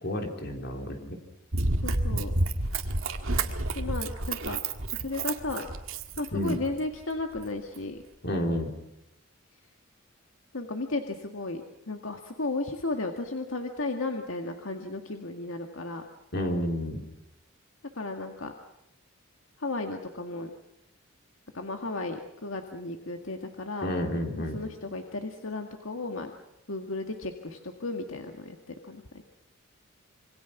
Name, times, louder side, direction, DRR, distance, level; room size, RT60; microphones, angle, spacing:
voice 1, 0.0-1.2 6.3-6.6 8.2-8.7 16.3-17.0 23.8-24.6, equal, 50° left, 3 dB, 3.9 m, -30 dB
Run, 1.5-6.8 7.4-7.5, right 2 dB, 75° right, 1.9 m, -30 dB
voice 2, 1.8-2.3 3.8-4.6 5.0-5.7 6.2-8.0 10.5-16.0 18.0-18.5 19.6-20.5 21.5-23.9 24.4-26.3 26.7-29.2, left 2 dB, 75° left, 4 dB, 1.9 m, -34 dB
27.0 x 24.5 x 6.0 m, 0.86 s
head